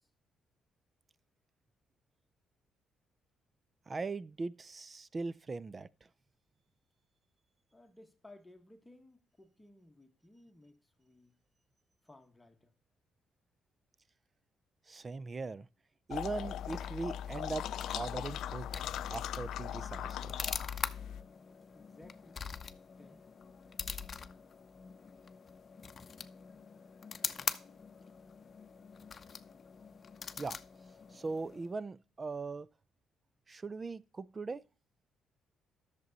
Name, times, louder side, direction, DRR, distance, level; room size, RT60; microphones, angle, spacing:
voice 1, 3.9-5.9 14.9-15.7 16.1-17.7 17.9-18.7 19.1-20.4 30.4-30.6 31.1-32.7 33.5-34.6, right 3 dB, 30° right, 0.4 m, -40 dB
voice 2, 7.7-11.3 12.0-12.7 21.7-22.4 23.0-23.2, left 1 dB, 10° left, 1.3 m, -59 dB
sound 1, 16.1-21.2, left 10 dB, 80° left, 0.4 m, -39 dB
sound 2, 16.2-31.8, left 6 dB, 40° left, 0.7 m, -44 dB
11.0 x 6.8 x 4.0 m
cardioid pair, 90°, 0 cm